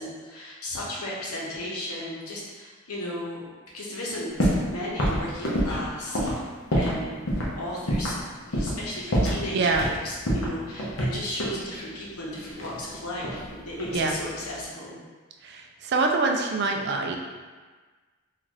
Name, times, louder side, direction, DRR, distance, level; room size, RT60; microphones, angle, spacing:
voice 1, 0.0-3.5 3.7-6.4 6.7-7.2 7.5-8.2 8.4-15.0, left 1 dB, 85° left, -5 dB, 0.9 m, -35 dB
sound 1, 4.4-4.7 5.0-7.0 7.3-7.5 7.9-8.2 8.5-8.8 9.1-10.0 10.3-11.6 12.6-13.5 13.8-14.2, equal, 60° left, 0.7 m, -26 dB
voice 2, 9.5-9.9 13.9-14.1 15.4-17.2, right 3 dB, 50° right, 3 dB, 0.3 m, -25 dB
3.8 x 2.4 x 3.0 m, 1.4 s
head